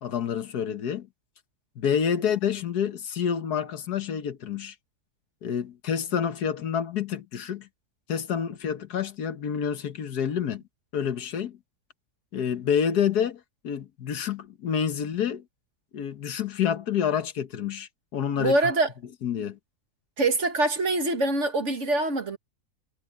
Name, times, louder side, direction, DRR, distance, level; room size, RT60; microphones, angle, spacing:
voice 1, 0.0-1.1 1.8-4.8 5.4-7.7 8.1-10.6 10.9-11.6 12.3-15.4 15.9-18.6 19.2-19.6, left 8 dB, 85° left, 1.7 m, -28 dB
voice 2, 18.4-18.9 20.2-22.4, right 2 dB, 50° right, 2.0 m, -24 dB
omnidirectional pair, 1.6 m